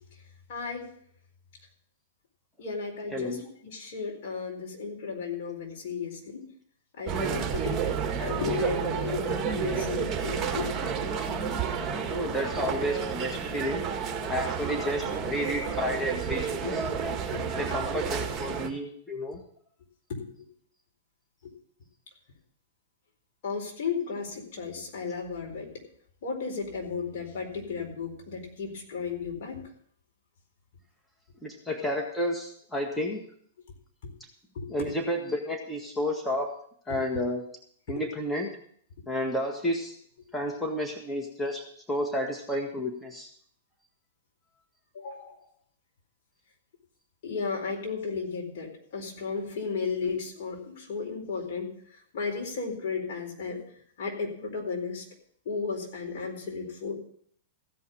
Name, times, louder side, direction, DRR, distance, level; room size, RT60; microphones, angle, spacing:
voice 1, 0.5-0.9 2.6-3.4 3.7-6.4 7.0-10.7 11.0-11.4 17.3-17.4 20.1-20.5 21.4-21.5 23.4-25.7 26.2-29.6 34.0-34.1 34.5-34.7 36.9-37.0 37.9-38.0 44.9-45.3 47.2-51.7 52.1-53.6 54.0-55.0 55.5-56.9, left 5 dB, 55° left, 0 dB, 4.2 m, -34 dB
voice 2, 3.1-3.4 11.6-13.8 14.3-16.8 17.6-19.4 31.4-33.2 34.7-36.5 36.9-37.4 37.9-38.6 39.1-39.9 40.3-43.3, equal, 10° left, 2 dB, 1.7 m, -31 dB
sound 1, 7.1-18.7, right 7 dB, 20° right, 1.9 m, -31 dB
15.5 x 5.7 x 8.5 m, 0.62 s
hypercardioid pair, 115°, 0 cm